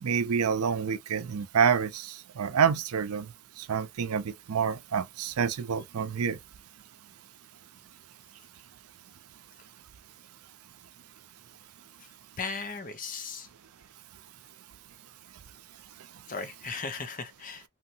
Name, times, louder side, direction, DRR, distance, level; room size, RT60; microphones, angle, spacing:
voice 1, 0.0-3.3 3.6-6.4, right 6 dB, 85° right, 0.5 m, -28 dB
voice 2, 12.4-13.5 16.3-17.6, left 4 dB, 40° left, 0.7 m, -36 dB
3.1 x 2.7 x 2.6 m
head